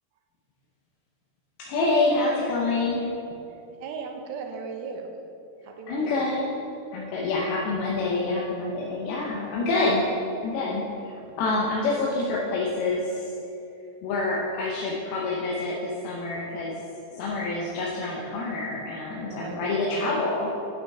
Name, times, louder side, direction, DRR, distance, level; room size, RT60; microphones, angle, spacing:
voice 1, 1.6-3.1 5.9-6.6 6.9-10.0 10.4-13.3 14.0-16.8 17.1-20.5, left 3 dB, 85° left, -4 dB, 2.8 m, -27 dB
voice 2, 3.8-5.1 5.6-6.2 11.2-11.3 19.3-20.2, right 5 dB, 80° right, 3 dB, 2.6 m, -37 dB
8.9 x 8.6 x 3.5 m, 2.8 s
omnidirectional pair, 4.3 m